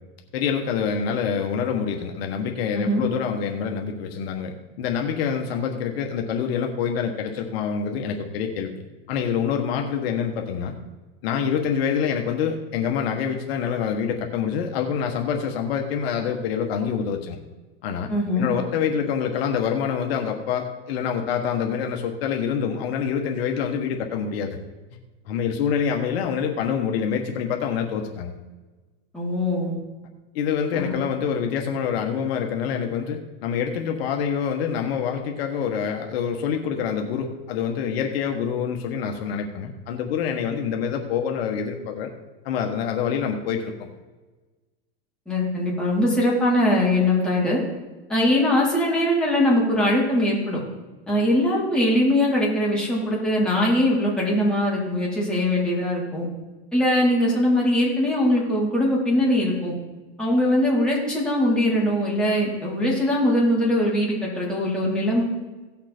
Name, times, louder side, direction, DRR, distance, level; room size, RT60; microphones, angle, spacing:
voice 1, 0.3-10.7 11.2-17.4 17.8-18.1 18.4-24.6 25.2-28.4 30.3-42.1 42.4-43.9, left 7 dB, 70° left, 3 dB, 1.4 m, -26 dB
voice 2, 18.1-18.5 29.1-29.8 30.7-30.9 45.3-47.6 48.1-50.6 51.1-56.3 56.7-59.7 60.2-65.2, left 1 dB, 5° left, -6 dB, 3.9 m, -21 dB
17.0 x 6.0 x 4.4 m, 1.2 s
supercardioid pair, 125°, 31 cm